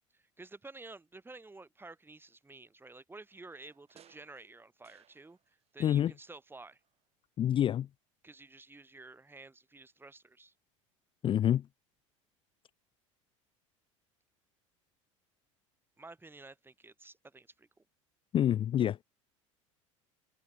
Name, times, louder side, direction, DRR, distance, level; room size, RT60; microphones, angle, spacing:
voice 1, 0.1-6.8 8.2-10.5 16.0-17.7, right 3 dB, 15° right, 3.3 m, -52 dB
sound 1, 3.3-5.7 6.0-7.1 7.4-7.5, right 9 dB, 40° right, 2.7 m, -65 dB
voice 2, 5.8-6.1 7.4-7.9 11.2-11.7 18.3-19.0, left 10 dB, 30° left, 0.4 m, -27 dB
hypercardioid pair, 80°, 17 cm